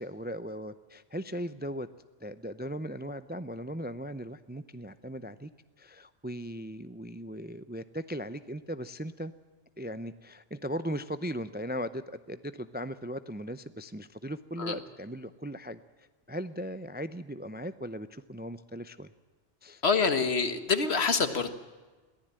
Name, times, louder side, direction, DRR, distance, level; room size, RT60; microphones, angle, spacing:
voice 1, 0.0-1.9 2.2-5.5 5.8-9.3 9.8-15.8 16.3-19.1 19.6-19.8, equal, 15° right, 13 dB, 0.4 m, -38 dB
voice 2, 19.8-21.5, left 5 dB, 75° left, 10 dB, 1.7 m, -26 dB
22.5 x 15.0 x 8.9 m, 1.3 s
omnidirectional pair, 1.1 m